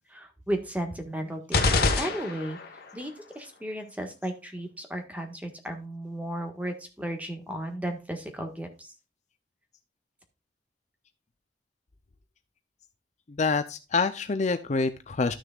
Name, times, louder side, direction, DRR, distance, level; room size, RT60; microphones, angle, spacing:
voice 1, 0.1-2.6 2.9-8.9, right 1 dB, 10° right, 4 dB, 1.5 m, -34 dB
sound 1, 1.5-2.8, left 3 dB, 60° left, 1.5 m, -25 dB
voice 2, 13.3-15.3, left 4 dB, 40° left, 10 dB, 0.5 m, -26 dB
13.0 x 6.3 x 2.4 m, 0.29 s
head